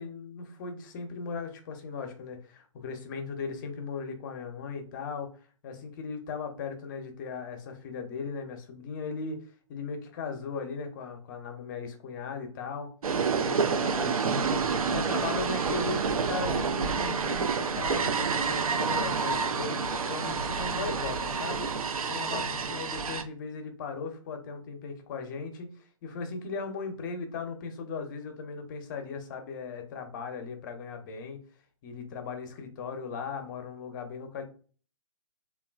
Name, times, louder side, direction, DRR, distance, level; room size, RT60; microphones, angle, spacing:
voice 1, 0.0-5.3 5.6-12.9 13.4-21.7 22.1-31.4 31.8-34.4, left 4 dB, 35° left, 5 dB, 0.6 m, -38 dB
sound 1, 13.0-23.2, right 5 dB, 90° right, 0.4 m, -28 dB
3.0 x 2.3 x 2.3 m, 0.40 s
hypercardioid pair, 140°, 18 cm